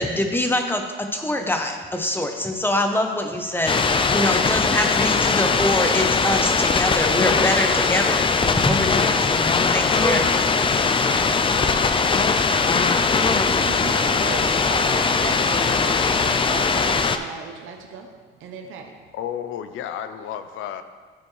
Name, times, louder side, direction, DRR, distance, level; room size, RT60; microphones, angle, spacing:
voice 1, 0.0-10.3, left 1 dB, 10° left, 4 dB, 0.8 m, -24 dB
sound 1, 3.7-17.2, left 4 dB, 25° left, 0.4 m, -20 dB
voice 2, 13.2-19.0, right 6 dB, 85° right, 3 dB, 0.7 m, -37 dB
voice 3, 19.1-20.8, left 9 dB, 85° left, 10 dB, 0.5 m, -32 dB
11.5 x 4.3 x 3.2 m, 1.5 s
cardioid pair, 90°, 20 cm